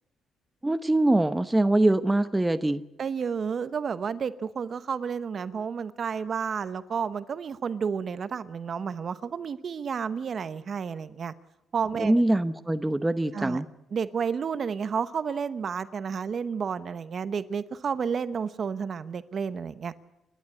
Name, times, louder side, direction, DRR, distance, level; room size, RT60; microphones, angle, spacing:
voice 1, 0.6-2.8 12.0-13.7, right 1 dB, 10° right, 11 dB, 0.9 m, -23 dB
voice 2, 3.0-11.3 11.7-12.2 13.3-13.6 13.9-19.9, right 6 dB, 45° right, 13 dB, 1.0 m, -31 dB
29.0 x 12.0 x 10.0 m, 0.90 s
cardioid pair, 115°, 0 cm